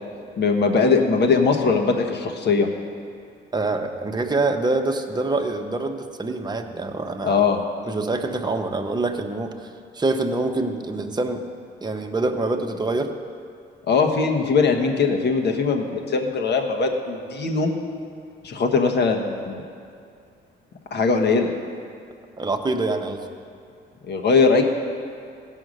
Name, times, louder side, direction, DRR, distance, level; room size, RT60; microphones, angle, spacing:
voice 1, 0.4-2.7 7.2-7.6 13.8-17.7 18.4-19.6 20.9-21.5 24.1-24.6, left 4 dB, 60° left, 3 dB, 1.3 m, -20 dB
voice 2, 3.5-7.5 7.8-11.4 11.8-13.1 22.4-23.3, right 2 dB, 20° right, 4 dB, 0.9 m, -25 dB
16.0 x 5.7 x 6.4 m, 2.4 s
cardioid pair, 90°, 20 cm